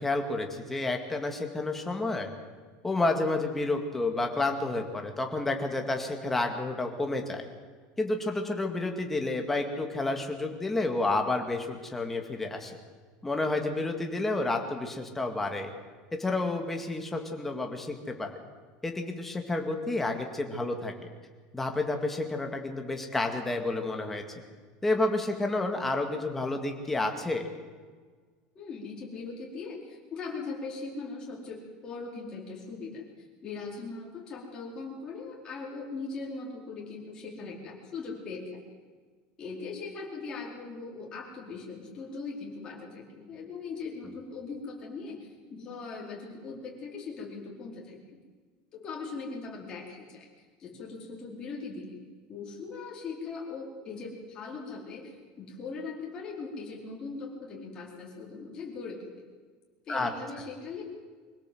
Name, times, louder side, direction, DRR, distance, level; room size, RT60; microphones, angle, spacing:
voice 1, 0.0-2.3 2.8-7.4 8.0-12.8 13.2-15.7 16.1-18.3 18.8-20.9 21.5-24.2 24.8-27.5 44.0-44.1 59.9-60.1, left 2 dB, 5° left, 3 dB, 1.9 m, -30 dB
voice 2, 28.5-38.6 39.4-48.2 48.7-50.3 50.6-52.0 52.3-59.2 59.9-60.8, left 4 dB, 20° left, -2 dB, 4.5 m, -40 dB
24.5 x 17.0 x 7.8 m, 1.5 s
cardioid pair, 180°, 3 cm